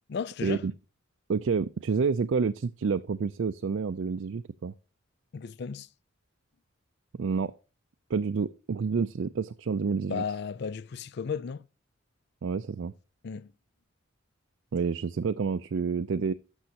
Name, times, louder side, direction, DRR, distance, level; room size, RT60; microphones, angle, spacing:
voice 1, 0.1-0.7 5.3-5.9 10.1-11.7 13.2-13.5, left 6 dB, 50° left, 0.4 m, -34 dB
voice 2, 1.3-4.7 7.2-7.5 8.1-10.2 12.4-12.9 14.7-16.3, right 5 dB, 60° right, 0.4 m, -29 dB
12.0 x 6.3 x 2.8 m
head